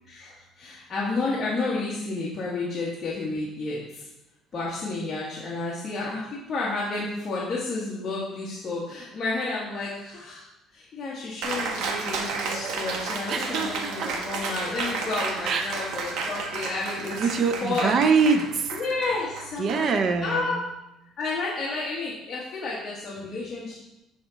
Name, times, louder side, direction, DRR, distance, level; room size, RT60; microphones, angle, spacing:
voice 1, 0.0-4.1 4.5-10.5 10.7-17.3 17.6-18.0 18.7-19.9 20.2-20.6 21.2-23.8, left 3 dB, 30° left, -7 dB, 1.4 m, -31 dB
Cheering, 11.4-20.4, right 4 dB, 75° right, 1.1 m, -32 dB
voice 2, 13.3-14.1 15.5-15.8 17.1-18.7 19.6-20.6, right 5 dB, 40° right, 8 dB, 0.5 m, -24 dB
9.8 x 3.6 x 4.0 m, 0.92 s
cardioid pair, 160°, 0 cm